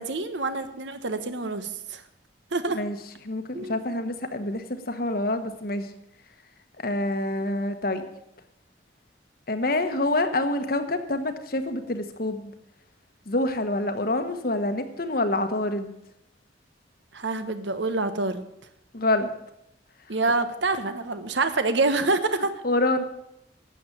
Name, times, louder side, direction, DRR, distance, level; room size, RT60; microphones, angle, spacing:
voice 1, 0.0-2.0 2.5-2.8 3.5-3.8 17.1-18.4 20.1-22.6, right 3 dB, 70° right, 10 dB, 1.1 m, -26 dB
voice 2, 3.2-5.9 6.8-8.1 9.5-12.5 13.3-15.9 18.9-19.3 22.6-23.0, left 2 dB, 50° left, 8 dB, 1.3 m, -27 dB
12.0 x 7.9 x 8.8 m, 0.81 s
head